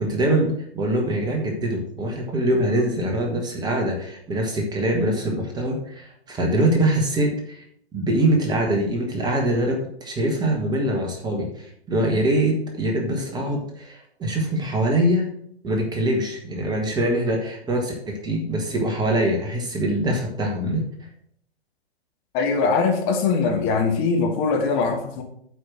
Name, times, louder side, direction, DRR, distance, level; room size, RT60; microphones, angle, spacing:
voice 1, 0.0-7.6 7.9-15.3 15.6-20.9, right 1 dB, 15° right, 1 dB, 1.5 m, -23 dB
voice 2, 22.3-25.2, left 4 dB, 30° left, 3 dB, 1.4 m, -21 dB
7.9 x 5.0 x 6.2 m, 0.67 s
figure-of-eight pair, 115°, 32 cm